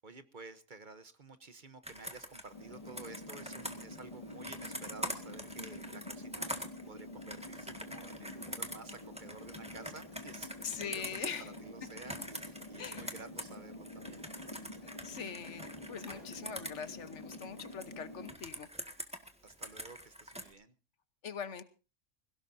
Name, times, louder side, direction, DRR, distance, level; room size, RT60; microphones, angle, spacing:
voice 1, 0.0-14.3 19.4-20.7, right 3 dB, 45° right, 12 dB, 1.0 m, -52 dB
Computer keyboard, 1.8-13.6 13.8-17.9 18.2-20.5, equal, 5° right, 1.7 m, -44 dB
sound 1, 2.5-18.4, left 1 dB, 30° left, 2.1 m, -48 dB
voice 2, 10.6-11.5 12.8-13.2 14.8-18.7 21.2-21.6, left 7 dB, 70° left, 12 dB, 1.3 m, -42 dB
22.0 x 17.0 x 2.7 m, 0.32 s
omnidirectional pair, 1.3 m